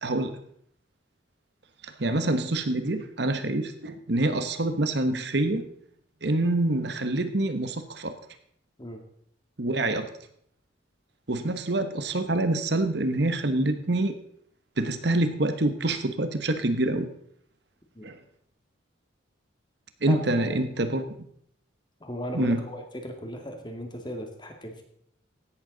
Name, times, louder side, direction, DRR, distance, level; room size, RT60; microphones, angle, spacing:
voice 1, 0.0-0.4 1.8-5.6 6.2-8.1 9.6-10.1 11.3-14.2 14.8-17.1 18.0-18.2 20.0-21.0 22.3-22.6, right 2 dB, 55° right, 9 dB, 1.1 m, -26 dB
voice 2, 20.1-20.6 22.0-24.8, equal, 25° left, 4 dB, 2.0 m, -37 dB
16.0 x 11.5 x 4.0 m, 0.68 s
head